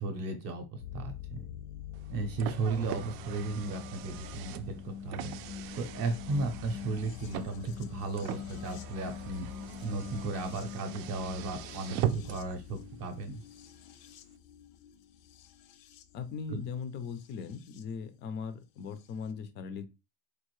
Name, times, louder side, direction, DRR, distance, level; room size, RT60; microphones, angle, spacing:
voice 1, 0.0-1.5 2.1-5.3 5.7-9.5 9.8-12.0 12.2-13.4 16.5-16.6, right 3 dB, 40° right, 6 dB, 0.7 m, -35 dB
sound 1, 0.8-17.8 19.0-19.1, left 8 dB, 75° left, 0.6 m, -44 dB
Car, 1.9-12.6, right 11 dB, 75° right, 0.5 m, -40 dB
voice 2, 16.1-19.9, left 6 dB, 30° left, 10 dB, 0.4 m, -39 dB
4.7 x 2.5 x 3.0 m, 0.27 s
cardioid pair, 170°, 40 cm